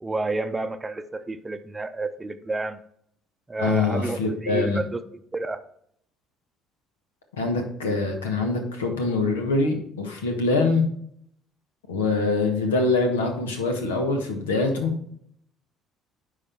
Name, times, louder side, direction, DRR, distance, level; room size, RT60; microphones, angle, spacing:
voice 1, 0.0-2.8 3.5-5.0 5.3-5.6, right 2 dB, 20° right, 10 dB, 0.6 m, -30 dB
voice 2, 3.6-4.8 7.4-10.8 11.9-14.9, left 3 dB, 80° left, 4 dB, 1.2 m, -24 dB
9.7 x 4.2 x 4.3 m, 0.67 s
figure-of-eight pair, 55°, 0 cm